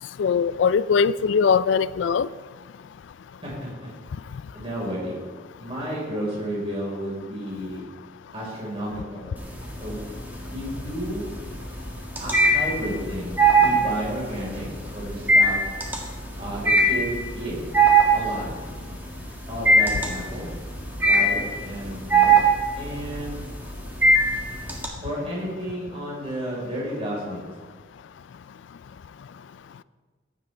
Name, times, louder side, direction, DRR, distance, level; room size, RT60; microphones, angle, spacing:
voice 1, 0.2-2.3, left 6 dB, 70° left, 17 dB, 0.3 m, -20 dB
voice 2, 3.4-3.9 4.5-5.2 5.6-7.8 8.3-9.3 9.8-10.0 10.5-11.3 12.2-14.7 14.9-15.6 16.4-17.6 18.1-18.5 19.5-20.5 21.0-22.3 22.7-23.4 25.0-27.5, equal, 30° right, -5 dB, 4.4 m, -32 dB
sound 1, 9.4-10.0 10.4-24.9, right 3 dB, 10° right, 1.8 m, -20 dB
16.0 x 10.5 x 3.3 m, 1.4 s
head